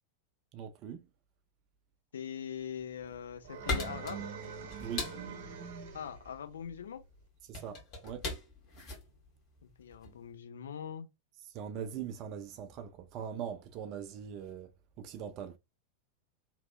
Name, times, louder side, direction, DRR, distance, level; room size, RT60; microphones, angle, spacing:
voice 1, 0.5-1.0 4.8-5.1 7.4-8.3 11.5-14.7 15.0-15.6, right 8 dB, 40° right, 0.4 m, -41 dB
voice 2, 2.1-4.3 5.9-7.0 9.6-11.1, left 8 dB, 65° left, 0.6 m, -42 dB
sound 1, 2.8-10.2, left 3 dB, 40° left, 1.5 m, -41 dB
sound 2, 3.4-6.3, right 6 dB, 55° right, 1.1 m, -43 dB
3.1 x 2.6 x 2.3 m
figure-of-eight pair, 90°, 0 cm